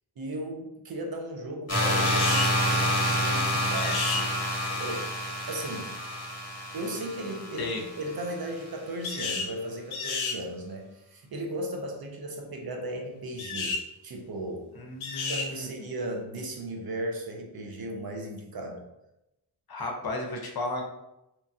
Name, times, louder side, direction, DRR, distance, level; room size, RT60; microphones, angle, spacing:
voice 1, 0.2-4.3 4.7-5.1 5.5-6.0 6.7-14.7 15.1-18.8, right 1 dB, 50° right, 2 dB, 0.6 m, -36 dB
sound 1, 1.7-8.5, equal, 30° left, 1.0 m, -28 dB
sound 2, 2.0-2.5 3.8-4.2 9.0-9.5 9.9-10.4 13.4-13.8 15.0-15.5, left 4 dB, 90° left, 0.6 m, -31 dB
voice 2, 14.8-15.7 19.7-20.8, left 2 dB, 50° left, 1 dB, 0.7 m, -33 dB
2.9 x 2.3 x 2.6 m, 0.91 s
cardioid pair, 55°, 47 cm